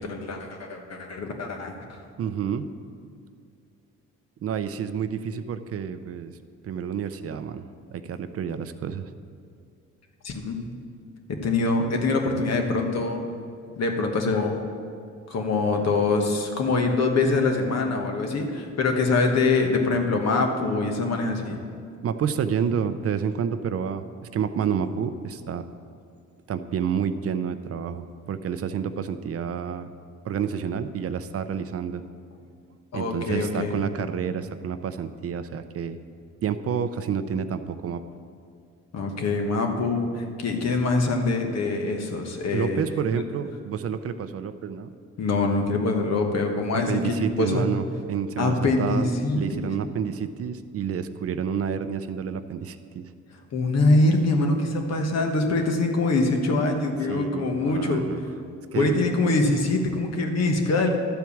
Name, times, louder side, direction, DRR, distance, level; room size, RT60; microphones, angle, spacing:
voice 1, 0.0-2.0 10.2-10.6 11.3-13.3 13.8-14.6 15.3-21.6 32.9-33.7 38.9-42.8 43.1-43.2 45.2-47.6 48.4-49.7 53.5-58.0 58.7-60.9, left 3 dB, 60° left, 3 dB, 1.3 m, -24 dB
voice 2, 2.2-2.7 4.4-6.3 6.6-9.1 22.0-24.0 24.3-25.6 26.5-29.9 30.2-32.0 32.9-36.0 36.4-38.0 42.5-44.9 46.9-53.1 57.1-58.2 58.7-59.0, right 7 dB, 50° right, 11 dB, 0.5 m, -29 dB
12.0 x 4.6 x 7.0 m, 2.3 s
cardioid pair, 90°, 30 cm